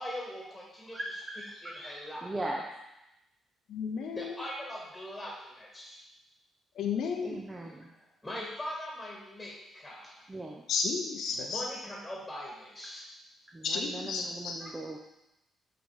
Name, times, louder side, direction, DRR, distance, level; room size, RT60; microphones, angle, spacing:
voice 1, 0.0-1.0 1.6-2.2 4.1-6.0 7.9-10.3 11.3-13.1, left 1 dB, 10° left, -3 dB, 1.8 m, -41 dB
voice 2, 0.9-2.6 7.2-7.9 10.3-10.6 13.5-15.0, right 1 dB, 20° right, 1 dB, 0.7 m, -39 dB
voice 3, 3.7-4.5 6.7-7.4 10.7-11.6 13.6-14.5, left 5 dB, 70° left, 3 dB, 0.7 m, -32 dB
5.6 x 4.1 x 4.8 m, 0.91 s
cardioid pair, 90°, 0 cm